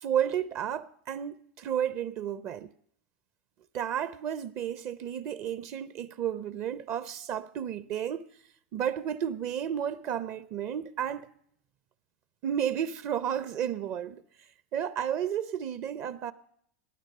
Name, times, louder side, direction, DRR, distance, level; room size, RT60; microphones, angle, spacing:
voice 1, 0.0-2.7 3.7-8.2 8.7-11.3 12.4-14.2 14.7-16.3, right 9 dB, 50° right, 0.7 m, -32 dB
19.0 x 10.0 x 6.7 m
hypercardioid pair, 90°, 6 cm